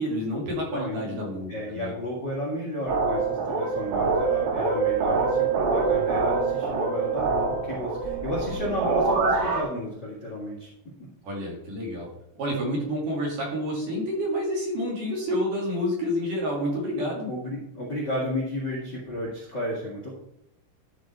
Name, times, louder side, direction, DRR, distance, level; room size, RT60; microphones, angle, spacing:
voice 1, 0.0-1.9 11.2-12.1 12.4-17.3, equal, 50° right, -3 dB, 3.2 m, -29 dB
voice 2, 0.7-1.0 1.5-10.7 16.9-20.1, left 1 dB, 45° left, -5 dB, 1.3 m, -32 dB
sound 1, 2.9-9.6, right 4 dB, 85° right, 4.2 m, -25 dB
13.0 x 5.2 x 4.4 m, 0.78 s
omnidirectional pair, 5.6 m